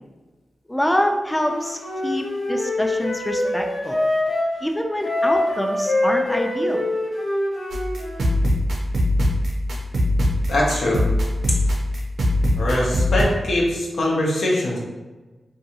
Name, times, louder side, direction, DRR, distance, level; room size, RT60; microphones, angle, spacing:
voice 1, 0.7-4.0 4.6-6.8, equal, 10° left, 3 dB, 0.3 m, -25 dB
Wind instrument woodwind instrument, 1.4-4.5 5.0-8.3, left 1 dB, 55° left, 0.8 m, -24 dB
sound 1, 7.7-13.2, left 1 dB, 85° right, 0.5 m, -21 dB
voice 2, 10.5-11.0 12.6-14.8, left 1 dB, 90° left, -4 dB, 0.6 m, -22 dB
2.6 x 2.3 x 2.7 m, 1.2 s
cardioid pair, 55°, 0 cm